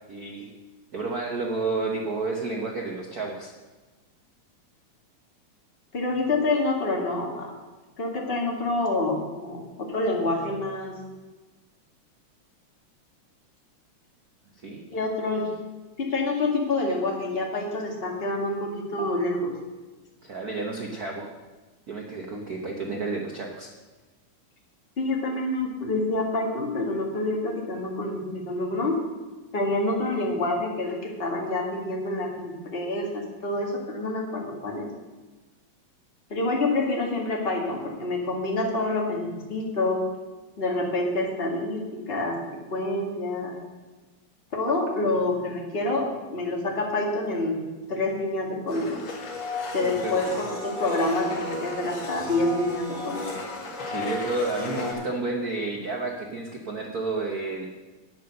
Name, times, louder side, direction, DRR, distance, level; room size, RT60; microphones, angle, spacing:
voice 1, 0.1-0.5 0.9-3.5 14.6-14.8 20.2-21.3 21.9-23.7 49.8-50.2 53.8-57.7, right 3 dB, 75° right, 0 dB, 0.8 m, -31 dB
voice 2, 5.9-7.5 8.0-11.0 14.9-15.5 16.0-19.5 25.0-29.0 29.5-34.9 36.3-40.0 40.6-43.5 44.5-47.6 47.9-49.0 49.7-53.3, left 2 dB, 25° left, -1 dB, 1.7 m, -27 dB
Domestic sounds home sounds, 48.7-54.9, left 2 dB, 65° left, 3.1 m, -33 dB
9.3 x 8.3 x 6.6 m, 1.2 s
omnidirectional pair, 3.3 m